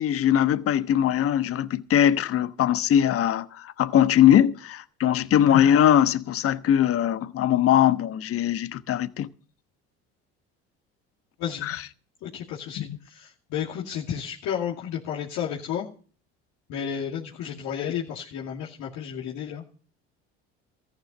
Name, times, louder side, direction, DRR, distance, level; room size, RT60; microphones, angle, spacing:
voice 1, 0.0-9.3 11.6-11.8, left 10 dB, 50° left, 1.1 m, -21 dB
voice 2, 12.2-15.9 16.7-19.6, left 9 dB, 70° left, 2.5 m, -32 dB
14.5 x 10.5 x 5.4 m
supercardioid pair, 90°, 29 cm